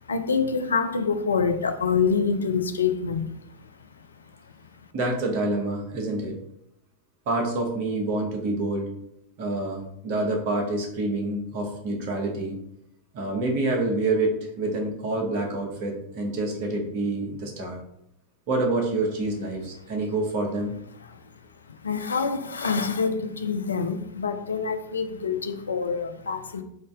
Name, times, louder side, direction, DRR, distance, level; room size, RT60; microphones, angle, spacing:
voice 1, 0.1-3.3 21.8-26.6, left 5 dB, 70° left, 0.3 m, -26 dB
voice 2, 4.9-6.4 7.3-8.9 9.4-12.6 13.1-17.8 18.5-20.7, right 2 dB, 45° right, 1.0 m, -27 dB
3.6 x 2.6 x 3.5 m
figure-of-eight pair, 90°, 0 cm